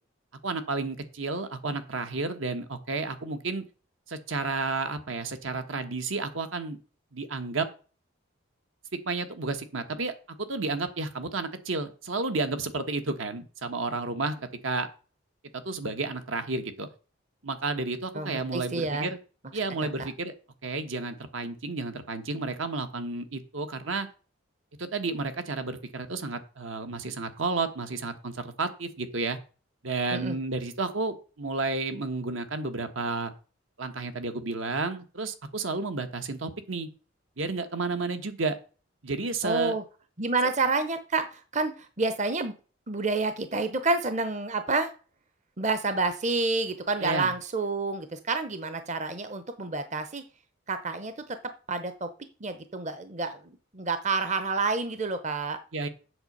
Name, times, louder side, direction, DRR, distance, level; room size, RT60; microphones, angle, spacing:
voice 1, 0.4-3.6 4.1-6.8 7.1-7.7 9.0-10.1 10.4-14.3 14.6-14.9 15.6-16.9 17.4-19.2 19.5-20.3 20.6-24.1 24.8-29.4 29.8-33.3 33.8-36.9 37.4-38.6 39.0-39.8 47.0-47.3 55.7-55.9, right 3 dB, 75° right, 8 dB, 1.3 m, -31 dB
voice 2, 18.1-19.1 20.0-20.1 30.1-30.4 39.4-39.8 40.2-42.5 42.9-44.9 45.6-50.2 50.7-51.4 51.7-52.1 52.4-55.6, right 3 dB, 35° right, 10 dB, 0.8 m, -29 dB
7.9 x 6.8 x 5.4 m, 0.36 s
head